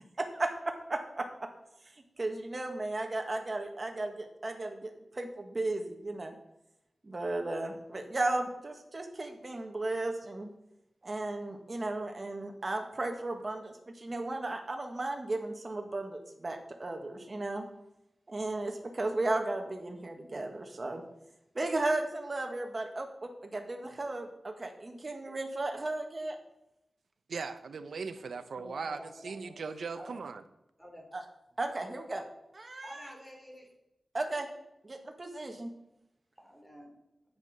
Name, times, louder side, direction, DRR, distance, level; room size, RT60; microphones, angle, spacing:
voice 1, 0.2-1.3 2.2-6.3 7.0-10.5 11.0-17.7 18.3-21.0 21.6-26.4 31.1-31.2 31.6-32.2 32.5-33.1 34.1-34.5 34.8-35.7, right 2 dB, 35° right, 4 dB, 1.8 m, -35 dB
voice 2, 27.3-30.4, right 5 dB, 85° right, 10 dB, 0.9 m, -39 dB
voice 3, 28.3-29.6 29.9-30.2 30.8-31.0 32.8-33.7 36.4-37.0, equal, 10° left, 0 dB, 3.4 m, -49 dB
9.6 x 9.4 x 6.7 m, 0.86 s
wide cardioid pair, 130°, 0 cm